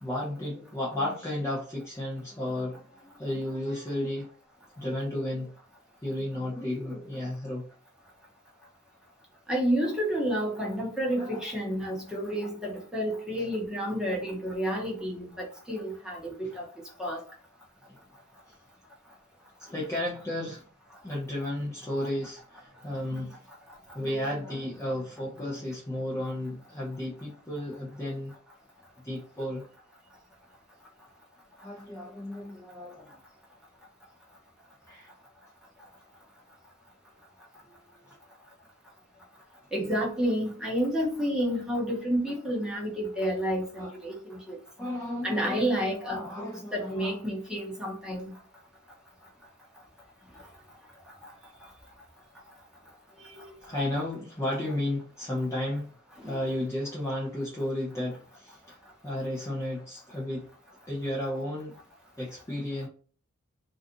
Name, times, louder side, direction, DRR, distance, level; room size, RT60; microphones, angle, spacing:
voice 1, 0.0-4.3 4.8-5.5 6.0-7.7 11.2-11.4 16.4-16.5 19.6-20.7 21.0-23.4 23.9-28.3 29.0-29.7 31.6-33.1 34.9-35.1 43.8-43.9 44.8-47.2 53.6-55.9 56.2-58.8 59.0-60.5 60.9-61.7 62.2-62.9, left 1 dB, 15° left, 0.5 m, -33 dB
voice 2, 9.5-16.6 17.0-17.2 39.7-44.6 45.2-48.3 56.2-56.4, equal, 5° right, 0.9 m, -30 dB
2.5 x 2.4 x 2.5 m
head